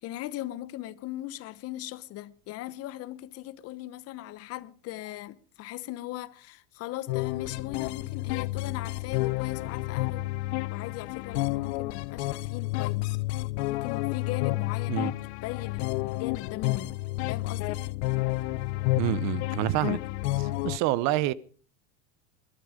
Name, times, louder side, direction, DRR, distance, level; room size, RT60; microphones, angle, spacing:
voice 1, 0.0-10.3 10.7-13.2 13.7-15.1 15.4-16.9 17.3-17.8, left 15 dB, 45° left, 1.0 m, -39 dB
sound 1, 7.1-20.8, left 19 dB, 70° left, 0.8 m, -30 dB
voice 2, 19.0-20.0 20.4-21.3, right 15 dB, 50° right, 0.9 m, -27 dB
20.0 x 13.0 x 5.1 m
supercardioid pair, 125°, 35 cm